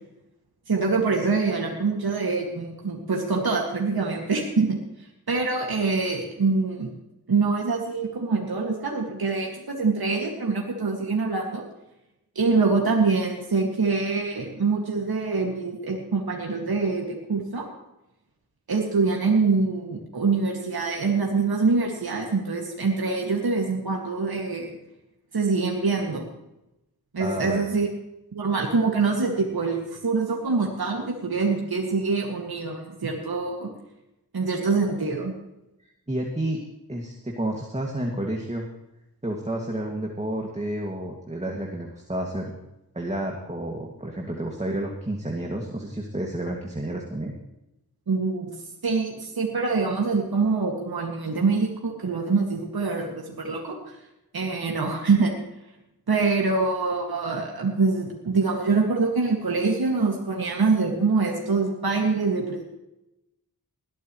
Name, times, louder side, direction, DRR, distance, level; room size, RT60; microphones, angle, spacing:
voice 1, 0.7-4.8 5.3-6.9 7.3-11.6 12.4-17.7 18.7-24.7 25.3-26.3 27.1-27.9 28.3-33.7 34.3-35.3 48.1-48.5 48.8-53.8 54.3-55.3 56.1-62.6, right 4 dB, 85° right, 0 dB, 2.2 m, -24 dB
voice 2, 27.2-27.6 36.1-36.6 36.9-38.7 39.2-42.5 42.9-47.3, right 1 dB, 20° right, 0 dB, 2.3 m, -30 dB
20.5 x 13.5 x 3.2 m, 0.91 s
wide cardioid pair, 65°, 36 cm